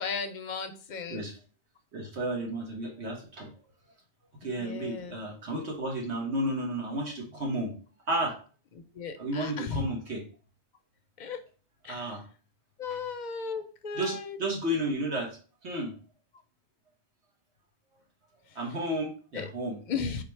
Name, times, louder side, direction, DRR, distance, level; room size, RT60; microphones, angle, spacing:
voice 1, 0.0-1.3 4.5-5.2 8.7-9.8 11.2-11.4 11.8-12.2 12.8-14.4 18.5-18.6 19.3-19.5 19.9-20.2, left 5 dB, 55° left, 7 dB, 0.6 m, -36 dB
voice 2, 1.9-3.5 4.4-7.7 8.1-8.4 9.2-10.2 11.9-12.2 13.9-15.4 15.6-15.9 18.5-19.8, right 1 dB, 75° right, -1 dB, 1.5 m, -32 dB
4.3 x 2.5 x 4.4 m, 0.38 s
omnidirectional pair, 1.1 m